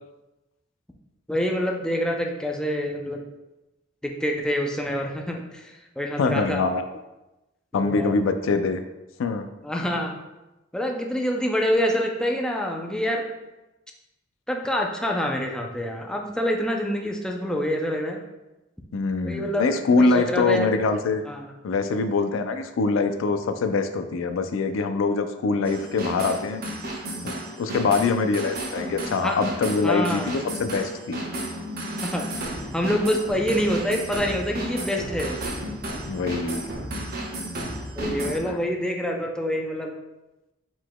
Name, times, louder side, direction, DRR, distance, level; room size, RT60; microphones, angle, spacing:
voice 1, 1.3-3.2 4.0-6.6 7.7-8.1 9.6-10.1 10.7-13.3 14.5-18.2 19.2-19.7 20.0-20.7 21.2-21.5 29.2-29.4 29.8-30.3 32.0-35.4 38.0-39.9, equal, 5° left, 1 dB, 0.4 m, -26 dB
voice 2, 6.2-6.9 7.7-8.8 9.2-9.5 18.9-21.2 21.6-26.6 27.2-31.2 36.1-36.7 38.4-38.6, left 4 dB, 90° left, 8 dB, 0.4 m, -24 dB
sound 1, 25.6-38.4, right 1 dB, 50° right, 0.8 m, -33 dB
4.7 x 3.8 x 2.2 m, 1.0 s
head